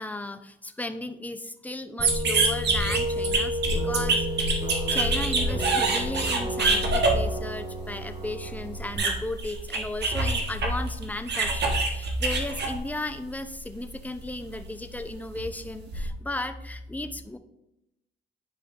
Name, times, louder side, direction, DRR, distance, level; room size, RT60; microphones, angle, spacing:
voice 1, 0.0-17.4, left 2 dB, 10° left, 8 dB, 0.5 m, -35 dB
sound 1, 2.0-9.0, equal, 25° right, 1.7 m, -32 dB
sound 2, 2.0-13.4 13.7-16.1, right 2 dB, 60° right, 1.5 m, -27 dB
10.5 x 5.0 x 2.5 m, 0.89 s
cardioid pair, 90°, 20 cm